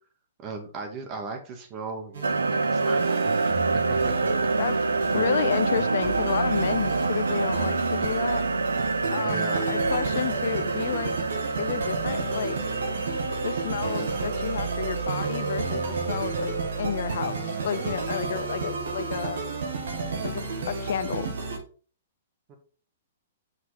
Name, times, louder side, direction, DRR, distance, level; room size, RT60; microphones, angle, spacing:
voice 1, 0.4-3.0 3.4-5.6 9.1-9.6 22.5-22.6, right 4 dB, 35° right, 2.0 m, -38 dB
sound 1, 2.1-21.6, right 4 dB, 65° right, 1.6 m, -32 dB
sound 2, 2.2-19.7, right 3 dB, 85° right, 0.6 m, -28 dB
voice 2, 5.1-8.4 9.1-11.1 11.6-12.6 13.4-19.4 20.2-21.3, left 9 dB, 65° left, 0.4 m, -31 dB
6.0 x 5.7 x 3.8 m
hypercardioid pair, 115°, 0 cm